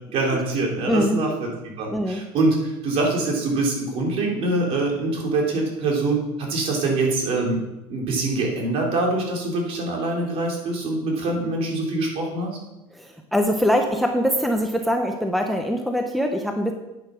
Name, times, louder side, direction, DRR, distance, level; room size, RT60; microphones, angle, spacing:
voice 1, 0.1-7.6 7.9-12.6, right 2 dB, 50° right, 0 dB, 3.4 m, -24 dB
voice 2, 0.9-1.2 1.9-2.2 12.9-16.7, equal, ahead, 4 dB, 0.8 m, -23 dB
9.4 x 9.0 x 6.2 m, 0.98 s
cardioid pair, 140°, 13 cm